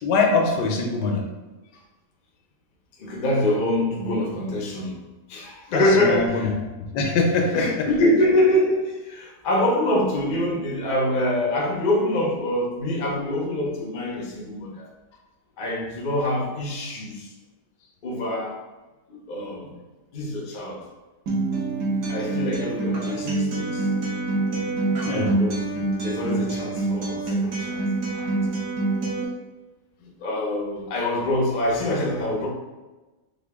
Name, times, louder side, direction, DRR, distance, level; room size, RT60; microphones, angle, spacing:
voice 1, 0.0-1.2 5.7-6.5 6.9-7.9 25.0-25.3, left 3 dB, 85° left, 2 dB, 1.2 m, -23 dB
voice 2, 3.0-5.0 5.3-6.5 7.5-14.9 15.6-17.3 18.0-18.6 19.1-19.7 20.1-20.9 22.1-23.9 25.1-28.5 30.0-32.5, left 1 dB, 60° left, -1 dB, 0.5 m, -25 dB
Acoustic guitar, 21.3-29.2, right 2 dB, 70° right, 1.4 m, -26 dB
3.7 x 2.2 x 3.4 m, 1.2 s
omnidirectional pair, 1.8 m